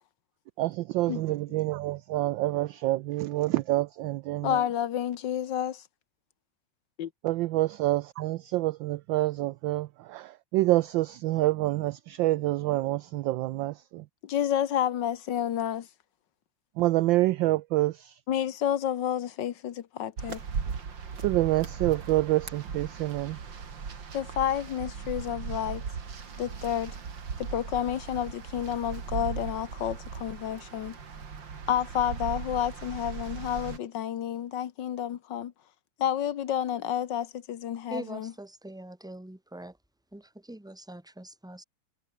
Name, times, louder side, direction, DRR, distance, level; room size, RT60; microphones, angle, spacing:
voice 1, 0.6-4.6 7.2-14.1 16.8-18.2 21.2-23.4, right 17 dB, 75° right, 1.1 m, -27 dB
voice 2, 4.4-5.8 7.0-7.1 14.2-15.9 18.3-20.4 24.1-25.8 26.4-27.0 27.4-31.0 31.7-35.5 36.0-38.3, left 10 dB, 60° left, 1.6 m, -30 dB
sound 1, 20.2-33.8, right 6 dB, 60° right, 3.0 m, -38 dB
voice 3, 37.9-39.8 40.1-41.6, right 1 dB, ahead, 1.6 m, -43 dB
omnidirectional pair, 2.4 m